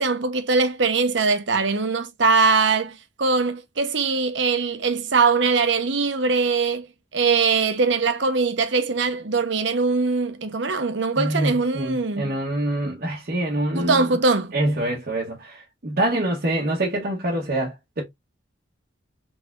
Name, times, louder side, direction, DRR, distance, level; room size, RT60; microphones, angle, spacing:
voice 1, 0.0-6.9 7.1-12.3 13.7-14.5, right 4 dB, 70° right, 0.9 m, -21 dB
voice 2, 11.2-14.1 14.5-18.0, right 1 dB, 50° right, 1.0 m, -25 dB
4.3 x 3.4 x 2.4 m
head